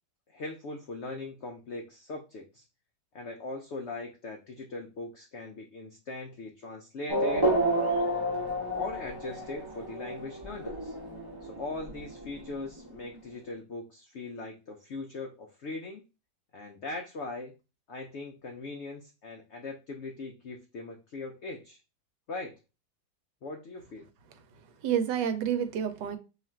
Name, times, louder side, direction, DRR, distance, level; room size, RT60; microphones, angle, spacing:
voice 1, 0.3-2.6 3.1-7.5 8.7-10.9 11.4-16.0 16.5-17.5 17.9-21.8 22.3-22.5 23.4-24.1, left 2 dB, 85° left, 0.6 m, -40 dB
Race car auto racing / Accelerating revving vroom, 7.1-13.2, right 1 dB, 25° right, 0.5 m, -31 dB
voice 2, 24.3-26.2, right 8 dB, 90° right, 1.2 m, -30 dB
2.9 x 2.5 x 4.2 m
omnidirectional pair, 1.8 m